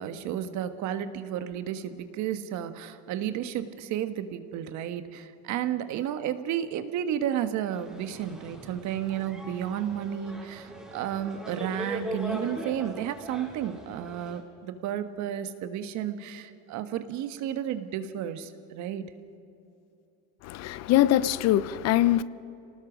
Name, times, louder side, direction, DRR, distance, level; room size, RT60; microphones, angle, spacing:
voice 1, 0.0-19.1, right 10 dB, 60° right, 1.4 m, -32 dB
sound 1, 7.7-14.4, right 1 dB, ahead, 4.5 m, -40 dB
voice 2, 20.4-22.2, left 13 dB, 55° left, 0.7 m, -23 dB
27.0 x 19.0 x 5.1 m
supercardioid pair, 110°, 32 cm